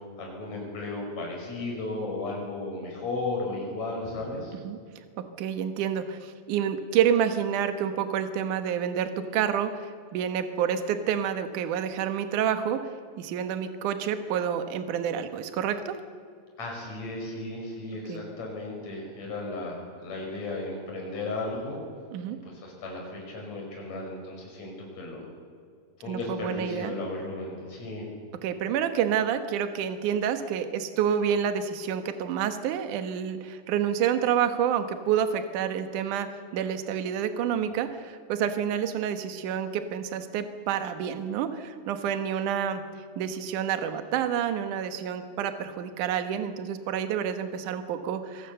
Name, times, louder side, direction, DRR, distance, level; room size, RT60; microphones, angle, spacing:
voice 1, 0.2-4.5 16.6-21.8 22.4-25.3 26.0-28.1, left 2 dB, 40° left, 0 dB, 6.6 m, -35 dB
voice 2, 5.4-12.9 13.2-16.0 18.1-18.2 22.1-22.4 26.1-26.9 28.4-36.3 36.5-42.8 43.2-48.5, right 8 dB, 60° right, 9 dB, 2.4 m, -28 dB
25.5 x 18.5 x 6.9 m, 2.2 s
omnidirectional pair, 4.8 m